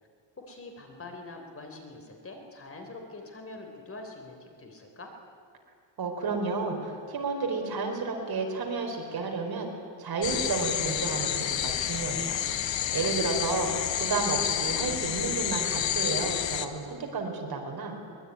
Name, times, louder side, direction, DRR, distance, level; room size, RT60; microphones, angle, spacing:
voice 1, 0.4-5.1 12.9-13.9, left 2 dB, 30° left, 3 dB, 3.7 m, -45 dB
voice 2, 6.0-9.7 10.0-12.4 12.9-18.0, right 4 dB, 50° right, 2 dB, 4.5 m, -31 dB
sound 1, 10.2-16.7, left 10 dB, 70° left, 1.5 m, -30 dB
23.5 x 21.0 x 9.6 m, 2.2 s
cardioid pair, 145°, 47 cm